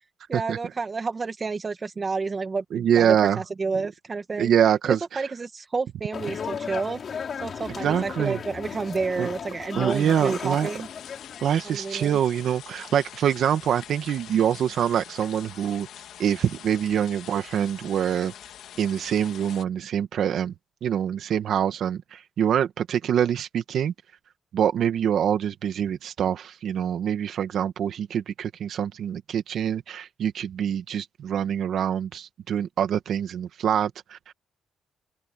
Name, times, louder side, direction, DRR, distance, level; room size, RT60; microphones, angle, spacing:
voice 1, 0.3-4.5 4.9-7.0 7.4-10.9 11.6-12.2, right 4 dB, 30° right, 2.2 m, -30 dB
voice 2, 2.7-3.4 4.4-5.3 7.8-8.4 9.2-9.3 9.8-10.7 11.4-15.9 16.2-18.3 18.8-20.5 20.8-23.9 24.5-34.3, right 9 dB, 70° right, 1.6 m, -25 dB
sound 1, 6.1-11.5, left 7 dB, 50° left, 5.2 m, -35 dB
sound 2, 9.9-19.6, left 10 dB, 75° left, 2.1 m, -44 dB
open air
cardioid pair, 90°, 0 cm